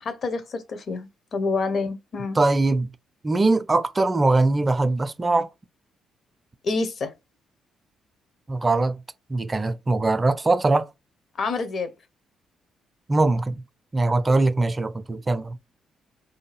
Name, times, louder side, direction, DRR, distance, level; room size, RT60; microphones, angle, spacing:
voice 1, 0.0-2.4 6.6-7.1 11.4-11.9, left 3 dB, 55° left, 0.6 m, -27 dB
voice 2, 2.4-2.9 3.2-5.5 8.5-9.0 9.3-10.9 13.1-13.6 13.9-15.6, right 2 dB, 25° right, 0.4 m, -21 dB
2.6 x 2.3 x 3.2 m
hypercardioid pair, 45°, 0 cm